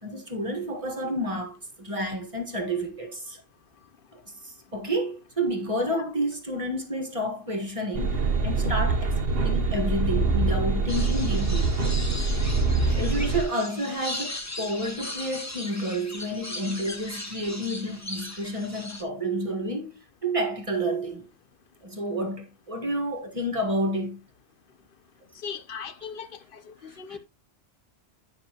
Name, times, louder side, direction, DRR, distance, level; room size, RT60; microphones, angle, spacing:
voice 1, 0.0-3.4 4.1-9.1 9.4-11.7 12.8-21.2 21.8-24.2 26.9-27.2, right 1 dB, 25° right, 1.7 m, -30 dB
sound 1, 7.9-13.4, right 3 dB, 50° right, 1.2 m, -24 dB
sound 2, 10.9-19.0, left 1 dB, 15° left, 1.0 m, -38 dB
voice 2, 25.4-27.2, left 6 dB, 50° left, 0.8 m, -38 dB
9.7 x 5.9 x 2.9 m
omnidirectional pair, 1.3 m